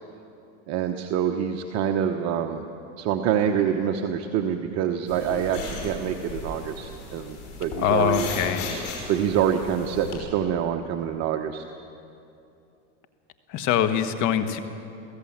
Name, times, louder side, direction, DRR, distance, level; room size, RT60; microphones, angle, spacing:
voice 1, 0.7-2.7 3.0-8.3 9.1-11.6, right 9 dB, 45° right, 4 dB, 1.1 m, -26 dB
sound 1, 5.1-10.1, left 3 dB, 75° left, 5.8 m, -36 dB
voice 2, 7.8-8.7 13.5-14.6, left 9 dB, 50° left, 9 dB, 1.5 m, -23 dB
23.5 x 16.0 x 7.4 m, 2.7 s
supercardioid pair, 120°, 37 cm